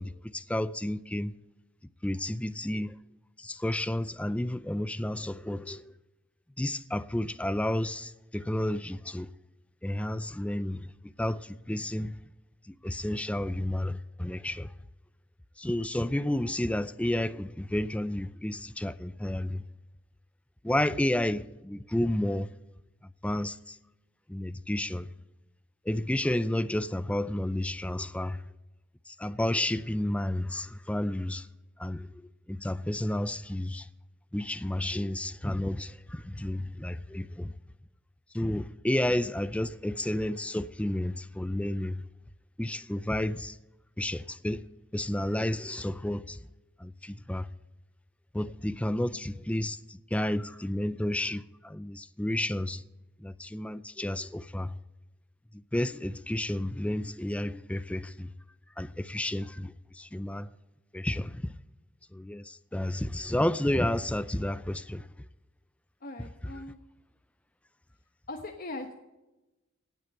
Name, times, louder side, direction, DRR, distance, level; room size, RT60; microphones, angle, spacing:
voice 1, 0.0-1.3 2.0-2.9 3.4-5.9 6.6-9.3 9.8-10.9 11.2-12.2 12.8-14.7 15.6-19.6 20.6-22.5 23.2-23.8 24.3-25.1 25.9-28.4 29.1-31.5 31.8-32.1 32.5-33.9 34.3-37.5 38.3-42.0 42.6-43.5 44.0-44.6 44.9-46.4 46.8-47.5 48.3-52.8 53.2-54.7 55.7-58.3 58.8-60.5 60.9-61.5 62.1-65.0, left 1 dB, 5° left, 0.4 m, -31 dB
voice 2, 66.0-66.8 68.3-68.9, left 2 dB, 45° left, 1.1 m, -40 dB
17.5 x 6.5 x 8.9 m
head